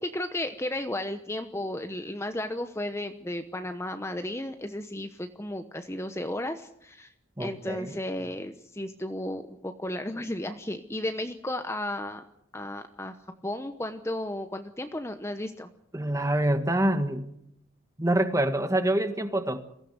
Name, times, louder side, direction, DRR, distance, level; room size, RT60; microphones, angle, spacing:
voice 1, 0.0-7.1 7.4-12.2 12.5-13.2 13.4-15.7, left 1 dB, 15° left, 7 dB, 0.9 m, -34 dB
voice 2, 7.4-8.0 15.9-17.3 18.0-19.6, right 1 dB, 15° right, 8 dB, 1.5 m, -26 dB
22.5 x 15.5 x 8.1 m, 0.76 s
head